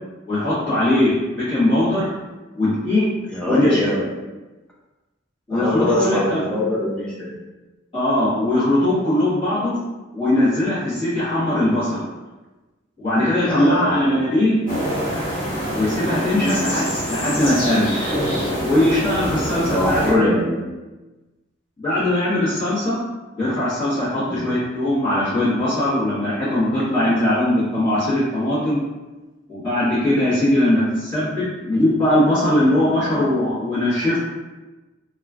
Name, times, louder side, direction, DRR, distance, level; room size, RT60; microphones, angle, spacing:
voice 1, 0.3-2.1 2.5-3.1 3.4-3.9 5.5-6.4 7.9-9.7 10.1-12.0 13.0-14.6 15.7-18.1 18.6-20.3 21.8-23.0 23.4-28.8 29.5-34.2, left 1 dB, 25° left, -17 dB, 1.2 m, -20 dB
voice 2, 3.3-4.1 5.5-7.4 13.3-14.0 16.3-16.6 19.5-20.7 24.2-24.6, left 1 dB, 5° left, -6 dB, 0.5 m, -23 dB
sound 1, 14.7-20.1, equal, 45° left, 1.1 m, -25 dB
3.0 x 2.3 x 2.4 m, 1.2 s
head